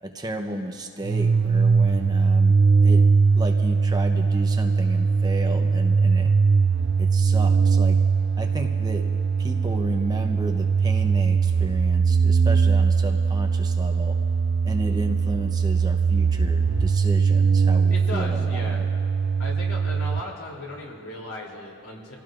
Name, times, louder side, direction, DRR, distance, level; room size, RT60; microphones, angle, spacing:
voice 1, 0.0-3.1 3.3-6.3 7.0-8.0 8.4-9.1 9.4-14.2 14.6-18.8, right 1 dB, 20° right, 3 dB, 0.8 m, -33 dB
sound 1, 1.0-20.2, right 5 dB, 55° right, 0.4 m, -21 dB
voice 2, 17.9-18.8 19.4-22.1, left 1 dB, 85° left, -2 dB, 3.2 m, -36 dB
27.0 x 16.5 x 2.6 m, 2.7 s
head